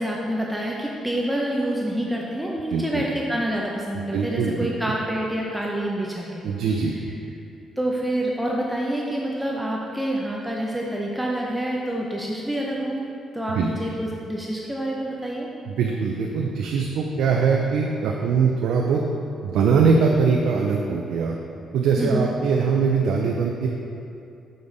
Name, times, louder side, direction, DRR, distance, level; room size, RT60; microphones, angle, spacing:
voice 1, 0.0-6.4 7.8-15.5 22.0-22.3, right 1 dB, 5° right, -3 dB, 0.7 m, -27 dB
voice 2, 2.7-3.0 3.9-4.7 6.4-7.0 13.5-13.7 15.7-19.0 19.4-21.3 21.7-23.7, right 5 dB, 80° right, 0 dB, 0.5 m, -22 dB
7.0 x 5.1 x 4.0 m, 2.8 s
cardioid pair, 90°, 0 cm